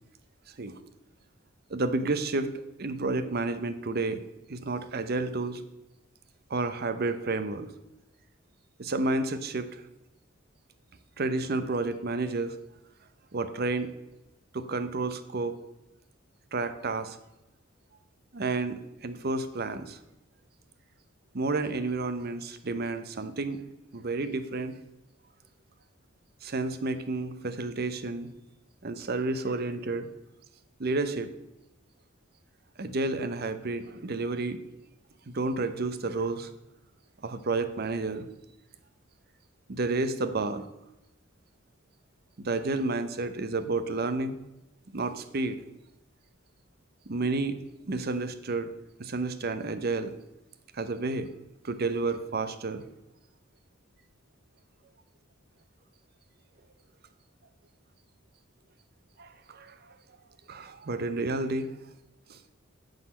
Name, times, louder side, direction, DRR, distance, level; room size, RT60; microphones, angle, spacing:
voice 1, 1.7-2.5 2.8-4.2 4.5-5.6 6.5-7.7 8.8-9.8 11.2-12.5 13.3-13.9 14.5-15.5 16.5-17.2 18.3-20.0 21.3-23.6 23.9-24.7 26.4-28.3 28.8-30.1 30.8-31.3 32.8-34.6 35.3-36.5 37.2-38.3 39.7-40.6 42.4-44.4 44.9-45.6 47.1-47.6 47.9-48.7 49.0-50.1 50.7-51.3 51.6-52.8 59.2-60.0 60.5-61.7 62.3-62.5, right 3 dB, 50° right, 10 dB, 0.7 m, -30 dB
9.6 x 4.1 x 7.3 m, 0.93 s
head